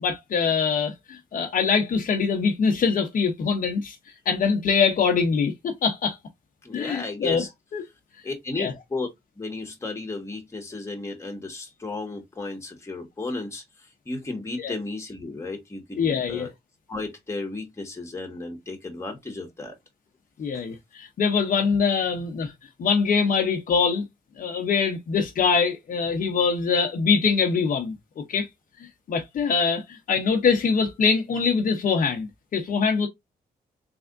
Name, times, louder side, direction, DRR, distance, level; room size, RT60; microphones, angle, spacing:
voice 1, 0.0-4.0 4.3-6.2 6.7-7.4 7.7-7.8 8.6-8.7 14.6-14.7 16.0-16.5 20.4-22.5 22.8-24.0 24.4-28.0 28.3-28.5 29.1-33.1, left 5 dB, 55° left, 0.7 m, -23 dB
voice 2, 6.6-7.5 8.2-9.1 9.4-13.6 14.0-16.5 16.9-19.7 20.5-20.6, left 3 dB, 15° left, 1.4 m, -34 dB
3.5 x 3.4 x 2.5 m
cardioid pair, 110°, 16 cm